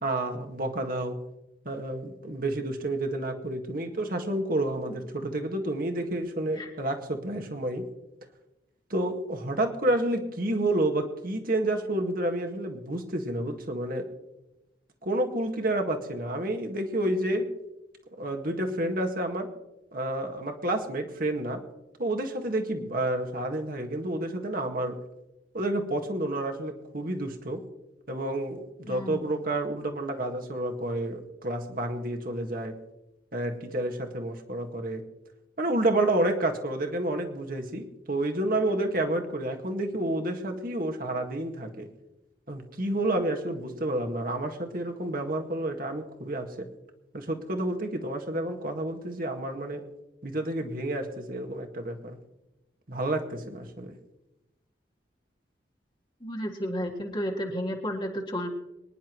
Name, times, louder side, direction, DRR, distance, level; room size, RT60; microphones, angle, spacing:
voice 1, 0.0-1.2 1.7-7.8 8.9-14.1 15.0-17.5 18.2-19.5 19.9-21.6 22.0-25.0 25.5-27.6 28.1-32.7 33.3-35.0 35.6-41.9 42.5-46.7 47.1-49.8 50.2-52.2 52.9-53.9, right 1 dB, 50° right, 4 dB, 1.9 m, -30 dB
voice 2, 28.9-29.2 56.2-58.5, equal, 25° left, 0 dB, 1.7 m, -32 dB
24.5 x 10.5 x 3.1 m, 0.95 s
head